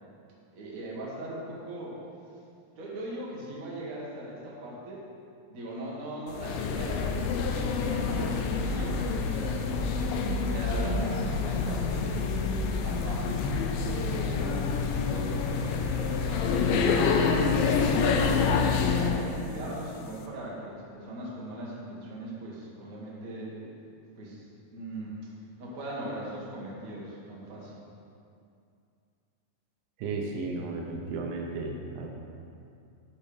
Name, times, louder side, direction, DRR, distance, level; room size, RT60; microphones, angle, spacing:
voice 1, 0.5-1.9 2.7-5.0 5.5-9.8 10.3-12.2 12.8-13.4 13.9-18.5 18.8-23.6 24.2-24.4 24.7-25.2 25.6-27.7, right 1 dB, 40° right, -5 dB, 1.3 m, -39 dB
sound 1, 6.3-19.2, left 5 dB, 85° left, 2.3 m, -27 dB
voice 2, 30.0-32.1, right 3 dB, 80° right, 1 dB, 2.5 m, -34 dB
13.0 x 4.4 x 5.0 m, 2.5 s
omnidirectional pair, 4.1 m